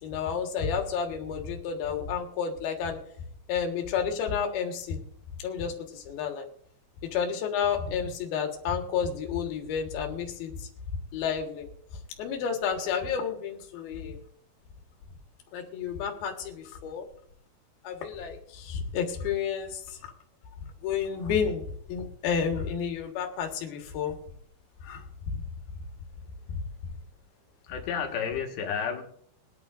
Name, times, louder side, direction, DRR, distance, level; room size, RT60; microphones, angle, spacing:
voice 1, 0.0-3.0 3.5-5.0 5.4-6.5 7.1-10.7 11.1-11.7 12.2-14.2 15.5-17.0 17.8-20.0 20.8-24.1 24.8-25.0 25.3-25.4, left 7 dB, 70° left, 2 dB, 3.3 m, -31 dB
voice 2, 27.6-29.0, left 7 dB, 85° left, 2 dB, 3.7 m, -31 dB
23.0 x 9.3 x 2.6 m, 0.65 s
omnidirectional pair, 4.7 m